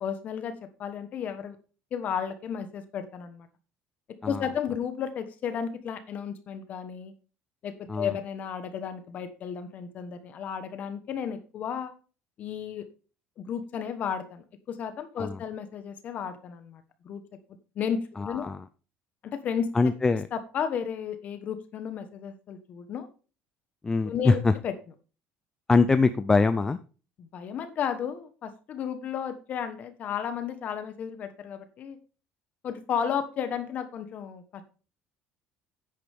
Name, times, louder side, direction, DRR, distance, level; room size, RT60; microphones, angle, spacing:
voice 1, 0.0-1.6 1.9-3.5 4.3-7.1 7.6-11.9 12.4-12.8 13.4-17.2 17.7-18.5 19.2-19.9 20.3-23.1 24.0-24.7 27.2-32.0 32.6-34.6, left 7 dB, 40° left, 10 dB, 1.2 m, -33 dB
voice 2, 18.2-18.6 19.7-20.3 23.8-24.5 25.7-26.8, left 4 dB, 15° left, 11 dB, 0.5 m, -23 dB
10.0 x 8.7 x 3.5 m, 0.35 s
cardioid pair, 165°, 4 cm